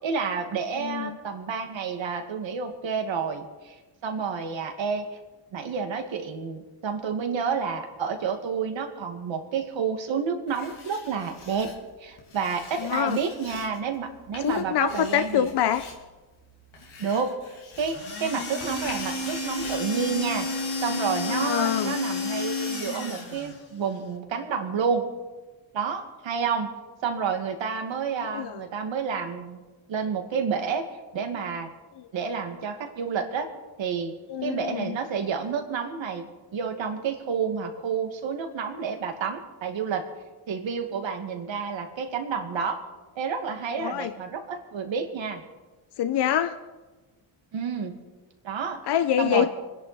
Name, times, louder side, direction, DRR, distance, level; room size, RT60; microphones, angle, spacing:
voice 1, 0.0-3.8 4.0-5.2 5.5-11.7 12.0-15.5 17.0-25.1 25.7-26.7 27.0-29.6 29.9-30.9 31.1-31.7 32.1-33.5 33.8-34.1 34.4-40.1 40.5-42.8 43.2-45.4 47.5-47.9 48.4-48.8 49.2-49.5, right 6 dB, 65° right, 4 dB, 2.4 m, -30 dB
voice 2, 0.8-1.2 12.8-13.2 14.4-15.8 21.3-21.9 28.3-28.6 34.3-35.0 43.8-44.1 46.0-46.6 48.9-49.5, left 10 dB, 55° left, 10 dB, 0.8 m, -25 dB
Writing, 10.5-20.6, left 4 dB, 80° left, 3.3 m, -46 dB
sound 1, 17.7-23.6, left 3 dB, 40° left, 3.6 m, -31 dB
26.0 x 10.5 x 4.4 m, 1.2 s
cardioid pair, 75°, 49 cm